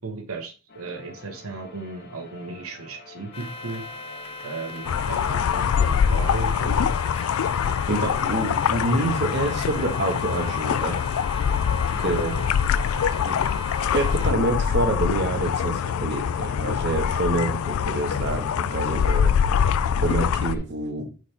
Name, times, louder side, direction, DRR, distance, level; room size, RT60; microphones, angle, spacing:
voice 1, 0.0-3.8 4.4-7.0 11.9-12.3, right 3 dB, 85° right, 3 dB, 1.1 m, -35 dB
sound 1, 0.7-20.6, left 3 dB, 45° left, 1.5 m, -47 dB
sound 2, 3.3-14.3, left 2 dB, 25° left, 0.7 m, -39 dB
sound 3, 4.8-20.6, left 7 dB, 80° left, 0.3 m, -24 dB
voice 2, 7.6-11.0 11.3-11.5 12.0-12.5 13.2-13.4 13.8-19.6 20.0-21.1, right 2 dB, 55° right, 4 dB, 1.3 m, -27 dB
6.1 x 4.0 x 4.3 m, 0.34 s
head